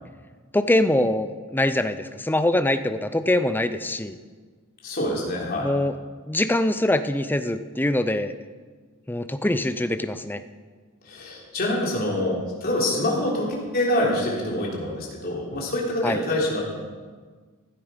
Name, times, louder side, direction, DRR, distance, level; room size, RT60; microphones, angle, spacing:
voice 1, 0.5-4.2 5.6-5.9 6.3-8.3 9.1-10.4 16.0-16.2, left 1 dB, 10° left, 10 dB, 0.5 m, -23 dB
voice 2, 4.8-5.7 11.1-16.6, left 1 dB, 45° left, -3 dB, 3.6 m, -25 dB
15.5 x 12.0 x 5.2 m, 1.5 s
head